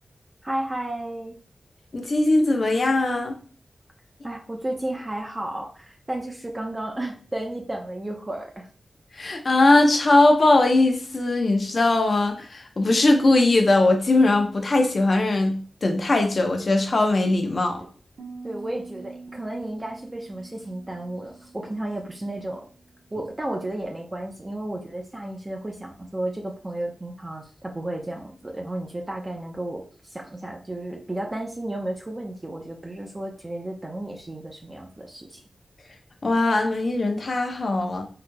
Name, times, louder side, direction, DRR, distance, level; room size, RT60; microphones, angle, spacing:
voice 1, 0.4-1.4 4.2-8.7 18.4-22.7 23.1-35.4, right 1 dB, 25° right, 0.7 m, -33 dB
voice 2, 1.9-3.4 9.1-17.8 36.2-38.1, left 2 dB, 55° left, 0.8 m, -20 dB
Piano, 18.2-23.8, right 3 dB, 85° right, 0.9 m, -45 dB
3.9 x 3.1 x 2.2 m
wide cardioid pair, 75°, 0 cm